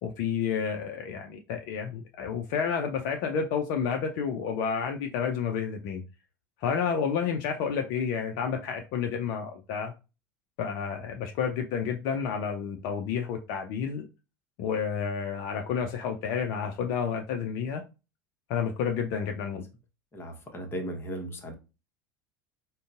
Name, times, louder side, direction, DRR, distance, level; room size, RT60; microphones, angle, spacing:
voice 1, 0.0-6.0 6.6-9.9 10.6-14.1 14.6-17.8 18.5-19.6, left 6 dB, 50° left, 4 dB, 0.6 m, -30 dB
voice 2, 20.1-21.5, equal, 20° left, 2 dB, 1.1 m, -36 dB
5.1 x 2.2 x 2.5 m, 0.29 s
figure-of-eight pair, 70°, 10 cm